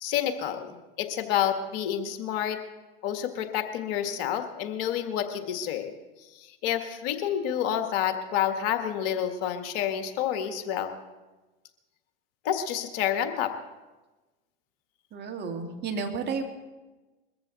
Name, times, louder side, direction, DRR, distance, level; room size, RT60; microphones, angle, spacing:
voice 1, 0.0-2.6 3.0-5.9 6.3-10.9 12.4-13.5, left 10 dB, 55° left, 7 dB, 1.6 m, -29 dB
voice 2, 15.1-16.4, right 5 dB, 35° right, 4 dB, 2.3 m, -32 dB
21.5 x 14.5 x 4.1 m, 1.1 s
hypercardioid pair, 95°, 30 cm